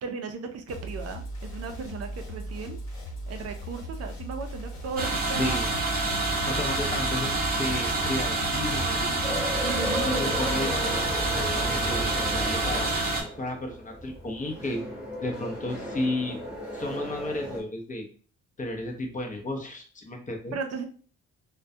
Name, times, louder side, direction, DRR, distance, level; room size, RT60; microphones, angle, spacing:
voice 1, 0.0-2.8 3.3-5.6 9.6-10.7 20.5-20.9, right 5 dB, 55° right, 6 dB, 0.4 m, -35 dB
sound 1, 0.7-12.9, right 1 dB, 65° left, 0.9 m, -38 dB
sound 2, 5.0-13.2, right 2 dB, 30° right, 0.8 m, -27 dB
voice 2, 5.4-5.7 6.5-9.4 10.0-12.9 13.4-14.8 15.2-16.4 16.7-18.1 18.6-20.6, left 1 dB, 25° left, 2 dB, 0.6 m, -33 dB
sound 3, 9.2-17.6, left 1 dB, 5° right, 0.9 m, -36 dB
2.2 x 2.2 x 2.6 m, 0.42 s
cardioid pair, 90°, 30 cm